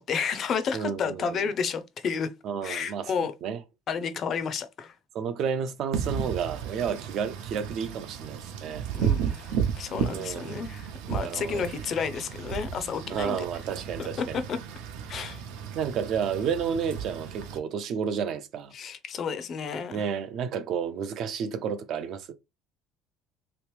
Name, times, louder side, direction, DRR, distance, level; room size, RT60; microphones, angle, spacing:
voice 1, 0.0-2.3 2.6-3.3 3.9-4.9 8.9-13.4 14.0-14.6 15.1-15.4 18.7-20.1, left 6 dB, 30° left, 0.4 m, -31 dB
voice 2, 0.7-1.5 2.4-3.6 5.1-8.9 10.1-10.7 11.1-11.7 13.1-14.4 15.1-15.3 15.8-18.7 19.9-22.3, right 7 dB, 40° right, 0.4 m, -31 dB
Wind / Rain, 5.9-17.6, right 8 dB, 75° right, 0.7 m, -33 dB
3.3 x 3.0 x 3.2 m
cardioid pair, 180°, 0 cm